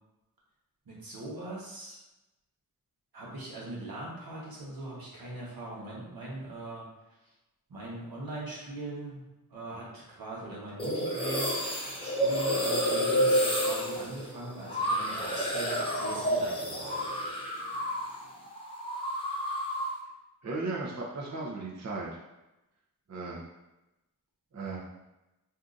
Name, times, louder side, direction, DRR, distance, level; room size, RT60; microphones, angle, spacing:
voice 1, 0.9-2.0 3.1-6.8 7.7-9.2 9.5-11.5 12.0-17.0, right 2 dB, 90° right, -5 dB, 1.1 m, -41 dB
sound 1, 10.8-18.2 18.5-20.0, equal, 15° left, 0.7 m, -30 dB
voice 2, 20.4-22.1 23.1-23.4 24.5-24.8, right 3 dB, 50° right, -4 dB, 0.7 m, -35 dB
2.7 x 2.5 x 3.7 m, 0.97 s
wide cardioid pair, 65°, 35 cm